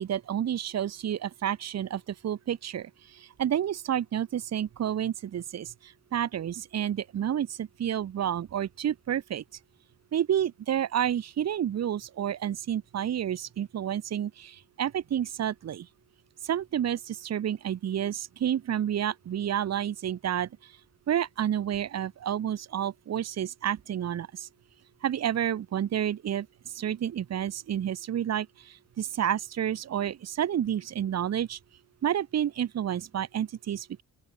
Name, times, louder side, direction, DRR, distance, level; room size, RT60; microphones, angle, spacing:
voice 1, 0.0-2.9 3.2-9.4 10.1-15.9 16.4-20.5 21.1-24.5 25.0-26.5 26.7-31.6 32.0-34.0, right 10 dB, 50° right, 0.9 m, -30 dB
open air
wide cardioid pair, 155°, 34 cm